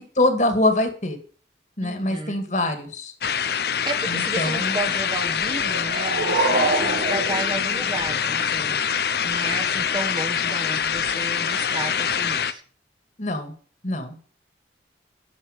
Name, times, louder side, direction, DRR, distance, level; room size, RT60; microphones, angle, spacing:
voice 1, 0.2-1.2 1.8-3.1 4.1-4.8 13.2-13.5 13.8-14.2, left 2 dB, 40° left, 6 dB, 2.2 m, -24 dB
voice 2, 1.8-2.4 3.9-8.8 9.2-12.6, right 2 dB, 25° right, 6 dB, 1.2 m, -33 dB
sound 1, 3.2-12.5, left 7 dB, 60° left, 0.7 m, -25 dB
sound 2, 5.5-8.5, right 2 dB, 65° right, 2.3 m, -26 dB
10.5 x 6.5 x 8.0 m, 0.42 s
head